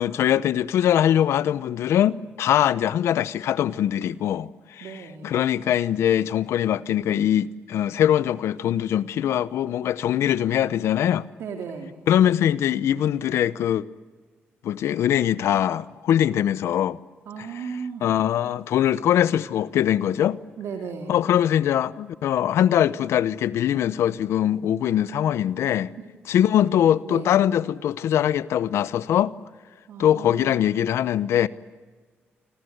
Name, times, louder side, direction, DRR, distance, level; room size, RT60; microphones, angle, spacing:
voice 1, 0.0-4.5 4.8-4.9 5.2-11.3 12.1-13.8 14.6-17.0 18.0-20.4 21.1-25.9 26.3-29.3 30.0-31.5, left 10 dB, 85° left, 0.8 m, -22 dB
voice 2, 4.8-5.4 11.4-12.0 17.2-18.1 20.6-21.2 26.0-26.1 27.0-27.3 29.9-30.6, right 5 dB, 85° right, 2.9 m, -35 dB
26.5 x 26.0 x 8.0 m
cardioid pair, 70°, 4 cm